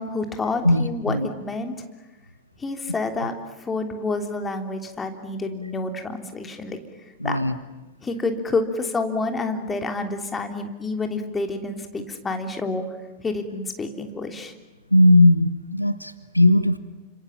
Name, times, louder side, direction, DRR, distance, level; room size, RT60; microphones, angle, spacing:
voice 1, 0.0-1.7 2.6-3.3 3.6-6.8 7.2-7.4 8.0-12.8 13.2-14.5, left 3 dB, 15° left, 5 dB, 3.2 m, -28 dB
voice 2, 0.6-1.3 3.2-3.3 7.2-7.5 14.9-16.8, left 1 dB, 90° left, 13 dB, 1.1 m, -18 dB
29.5 x 26.5 x 7.3 m, 1.1 s
figure-of-eight pair, 90°, 0 cm